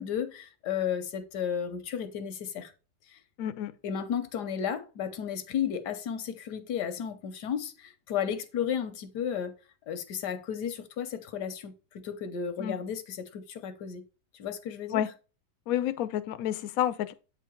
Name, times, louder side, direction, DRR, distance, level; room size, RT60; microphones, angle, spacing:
voice 1, 0.0-2.7 3.1-3.2 3.8-9.5 9.9-14.0 14.4-15.0, left 8 dB, 85° left, 1.4 m, -33 dB
voice 2, 3.4-3.7 12.6-12.8 14.9-15.1 15.7-17.1, left 11 dB, 70° left, 0.9 m, -29 dB
8.3 x 3.7 x 4.4 m
omnidirectional pair, 1.7 m